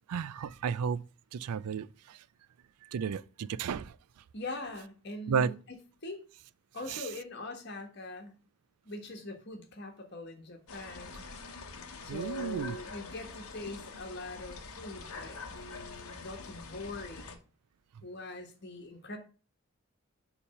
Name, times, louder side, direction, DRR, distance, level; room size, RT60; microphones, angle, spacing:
voice 1, 0.1-1.0 1.3-2.2 2.9-3.9 5.3-5.5 6.9-7.0 12.1-12.8, right 6 dB, 90° right, 0.4 m, -33 dB
voice 2, 4.3-5.8 6.0-6.2 6.7-8.4 8.8-11.3 12.0-17.4 18.0-19.2, left 2 dB, 50° left, 1.4 m, -42 dB
sound 1, 10.7-17.4, left 4 dB, 75° left, 1.0 m, -45 dB
7.0 x 3.4 x 5.6 m
head